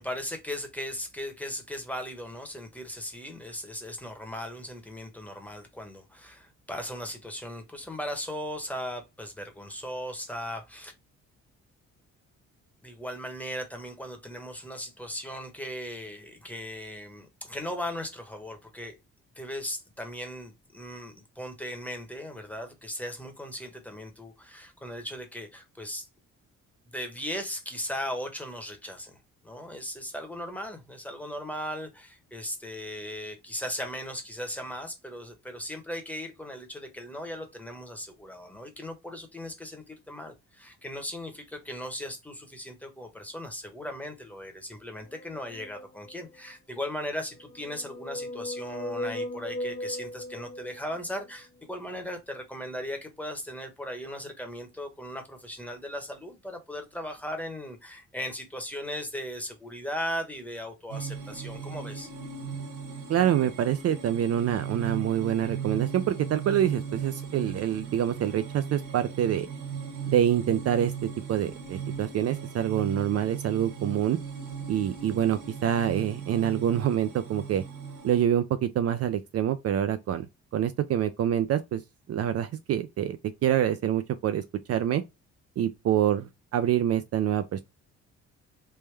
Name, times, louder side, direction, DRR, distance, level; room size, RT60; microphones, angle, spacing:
voice 1, 0.0-10.9 12.8-19.0 19.4-26.1 26.9-29.2 29.4-62.1, equal, 5° left, 1.0 m, -37 dB
sound 1, 44.9-46.5 47.4-51.3, left 1 dB, 25° left, 0.5 m, -38 dB
sound 2, 60.9-78.2, right 6 dB, 85° right, 1.4 m, -38 dB
voice 2, 63.1-69.5 70.1-70.9 71.3-74.2 74.7-77.6 78.0-80.3 80.5-81.8 82.1-84.4 84.7-85.0 85.6-87.6, right 10 dB, 55° right, 0.4 m, -26 dB
3.4 x 2.1 x 3.2 m
cardioid pair, 90°, 30 cm